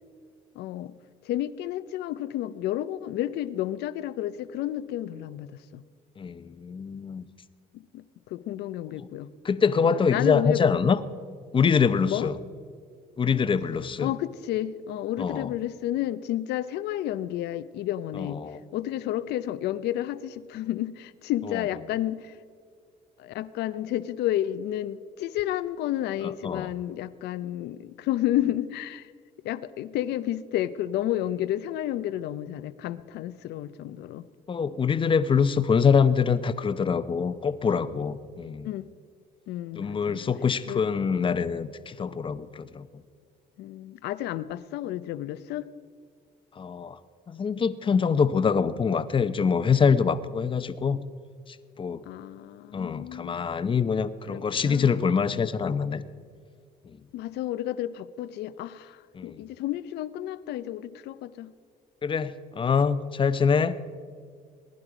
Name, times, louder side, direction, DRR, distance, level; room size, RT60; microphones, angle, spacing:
voice 1, 0.5-0.9 1.2-5.8 7.7-8.0 8.3-9.3 9.9-10.7 12.1-12.3 14.0-18.4 18.7-22.4 23.2-29.1 29.4-34.3 38.6-38.9 39.5-40.3 40.7-40.8 43.6-45.7 52.1-53.4 54.3-54.9 57.1-61.5, left 13 dB, 80° left, 15 dB, 0.6 m, -31 dB
voice 2, 6.2-7.2 9.4-11.0 11.5-12.4 13.2-14.1 15.2-15.5 18.2-18.6 26.4-26.7 34.5-38.7 39.7-42.8 46.6-47.0 47.3-51.0 51.5-52.0 52.7-56.0 59.1-59.4 62.0-63.7, left 6 dB, 30° left, 12 dB, 0.7 m, -24 dB
20.0 x 11.0 x 5.0 m, 2.1 s
cardioid pair, 110°, 17 cm